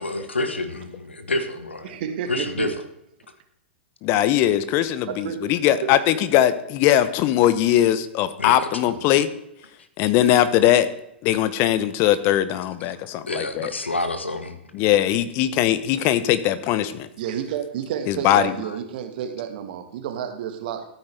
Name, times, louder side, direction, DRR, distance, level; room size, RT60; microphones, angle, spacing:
voice 1, 0.0-1.9 2.3-2.7 8.4-8.9 12.8-13.0 13.3-14.6 18.6-18.8, left 2 dB, 85° left, 9 dB, 1.3 m, -28 dB
voice 2, 1.8-2.7 5.1-5.5 5.8-5.9 17.2-20.9, right 9 dB, 55° right, 7 dB, 1.6 m, -30 dB
voice 3, 4.0-9.3 10.0-10.9 11.2-13.7 14.7-17.1 18.1-18.5, left 12 dB, 40° left, 14 dB, 0.8 m, -20 dB
14.0 x 8.8 x 3.4 m, 0.79 s
figure-of-eight pair, 105°, 6 cm